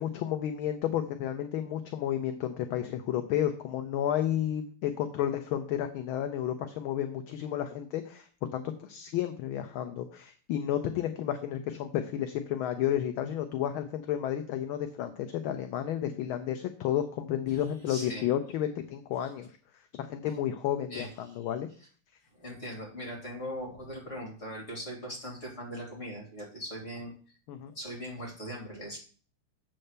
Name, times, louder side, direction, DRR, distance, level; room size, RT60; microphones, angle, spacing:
voice 1, 0.0-19.5 19.9-21.7 27.5-27.7, left 10 dB, 75° left, 7 dB, 1.5 m, -32 dB
voice 2, 17.5-18.3 20.9-21.4 22.4-27.1 27.7-29.0, equal, 30° left, -1 dB, 3.4 m, -40 dB
7.6 x 4.4 x 6.6 m, 0.42 s
omnidirectional pair, 2.4 m